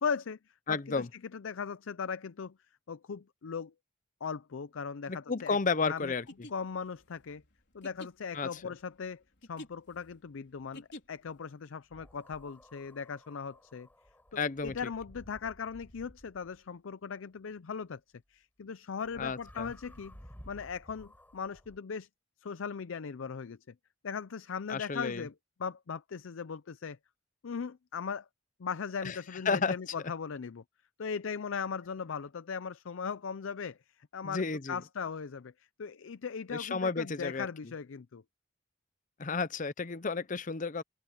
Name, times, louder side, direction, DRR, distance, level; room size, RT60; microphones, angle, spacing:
voice 1, 0.0-0.4 0.7-2.6 2.9-3.7 4.2-5.6 5.9-6.1 6.5-7.4 7.7-9.2 9.5-13.9 14.3-18.0 18.3-20.2 20.5-22.1 22.4-23.7 24.0-25.3 25.6-27.0 27.4-28.3 28.6-30.6 31.0-33.8 34.1-35.5 35.8-38.2, left 6 dB, 80° left, 0.5 m, -38 dB
voice 2, 0.7-1.1 5.1-6.3 8.3-8.6 14.4-14.8 19.2-19.7 24.7-25.3 29.0-29.2 29.5-29.7 34.2-34.8 36.5-37.5 39.2-40.8, left 4 dB, 40° left, 0.7 m, -32 dB
sound 1, 6.3-11.4, left 1 dB, 60° left, 4.2 m, -50 dB
sound 2, 11.9-16.6 19.0-21.8, equal, 10° left, 5.4 m, -55 dB
open air
head